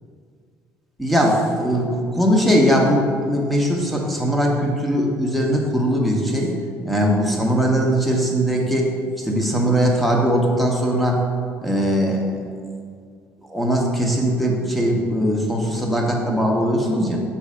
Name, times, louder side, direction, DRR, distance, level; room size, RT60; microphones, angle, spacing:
voice 1, 1.0-6.5 6.8-8.9 9.2-11.2 11.6-12.4 13.5-17.2, equal, ahead, -1 dB, 0.9 m, -20 dB
6.3 x 4.3 x 4.9 m, 2.1 s
cardioid pair, 150°, 6 cm